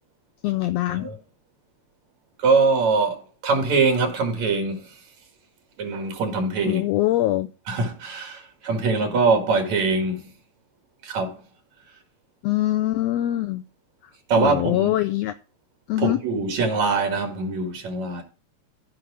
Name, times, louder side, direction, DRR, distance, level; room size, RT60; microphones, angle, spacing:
voice 1, 0.4-1.1 6.7-7.5 12.4-13.6 14.4-15.3 15.9-16.2, left 15 dB, 75° left, 1.6 m, -23 dB
voice 2, 2.4-5.0 5.8-6.9 7.7-10.3 11.0-11.4 14.3-14.9 16.0-18.2, right 4 dB, 70° right, 3.1 m, -23 dB
14.5 x 4.9 x 4.9 m
omnidirectional pair, 3.4 m